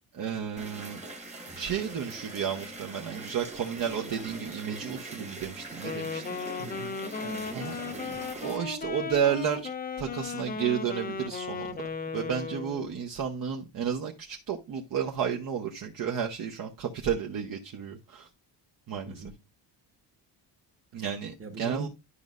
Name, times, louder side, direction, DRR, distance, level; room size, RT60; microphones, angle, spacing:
voice 1, 0.1-1.0 1.6-6.4 7.5-7.7 8.4-9.7 10.0-11.7 12.1-18.3 18.9-19.1 20.9-21.9, right 8 dB, 50° right, 0.9 m, -32 dB
sound 1, 0.6-8.6, right 2 dB, 15° right, 1.1 m, -43 dB
Wind instrument woodwind instrument, 5.8-12.9, left 5 dB, 20° left, 0.5 m, -36 dB
voice 2, 6.6-8.3 19.1-19.3 21.4-21.9, right 4 dB, 30° right, 1.3 m, -41 dB
11.5 x 5.3 x 2.5 m
cardioid pair, 170°, 43 cm